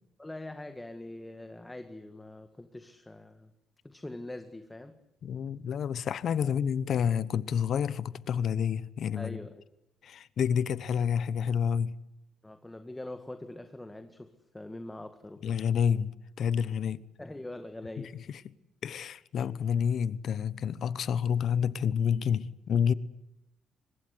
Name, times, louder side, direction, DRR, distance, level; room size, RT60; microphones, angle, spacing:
voice 1, 0.2-3.5 3.8-5.0 6.4-6.5 9.2-9.6 12.4-15.6 17.2-18.2, left 1 dB, 10° left, 1.8 m, -43 dB
voice 2, 5.2-9.4 10.0-11.9 15.4-17.0 18.8-22.9, left 7 dB, 65° left, 1.0 m, -29 dB
24.5 x 21.0 x 9.5 m
cardioid pair, 90°, 0 cm